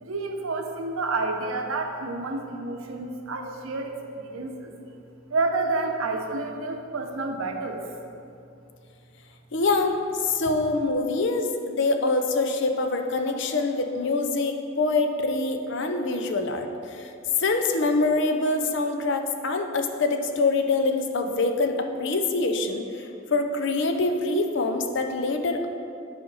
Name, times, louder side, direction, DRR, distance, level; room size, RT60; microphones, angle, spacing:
voice 1, 0.0-4.7 5.3-7.9, right 3 dB, 80° right, 4 dB, 0.7 m, -29 dB
voice 2, 9.5-17.1 17.4-25.7, left 3 dB, 60° left, 5 dB, 0.6 m, -25 dB
9.6 x 5.1 x 4.0 m, 2.6 s
head